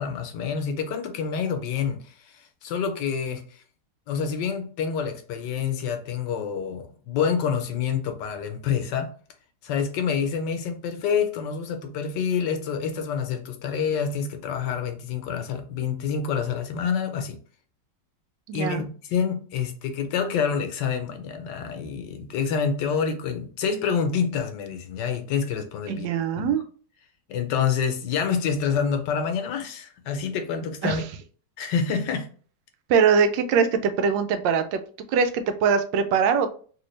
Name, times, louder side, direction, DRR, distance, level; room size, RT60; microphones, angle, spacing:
voice 1, 0.0-3.6 4.1-9.1 9.6-17.4 18.5-26.1 26.4-26.6 27.3-31.0 31.6-32.3, left 6 dB, 75° left, 1.3 m, -27 dB
voice 2, 18.5-18.8 25.9-26.6 30.8-31.0 32.9-34.8 35.1-36.5, right 6 dB, 85° right, 1.3 m, -22 dB
3.2 x 2.8 x 3.1 m
omnidirectional pair, 1.9 m